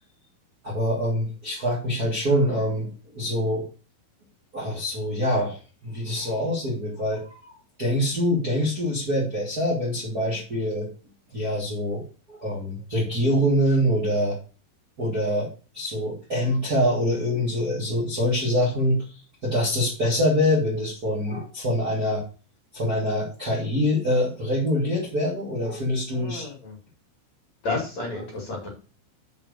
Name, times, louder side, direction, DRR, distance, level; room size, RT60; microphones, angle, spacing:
voice 1, 0.6-3.6 4.5-7.5 7.8-10.9 11.3-12.0 12.3-14.3 15.0-15.5 15.7-19.0 19.4-22.2 22.7-26.5, equal, 25° right, -5 dB, 2.0 m, -25 dB
voice 2, 26.1-26.8 27.6-28.7, left 3 dB, 40° left, -2 dB, 2.9 m, -31 dB
7.5 x 5.5 x 6.5 m, 0.35 s
omnidirectional pair, 5.9 m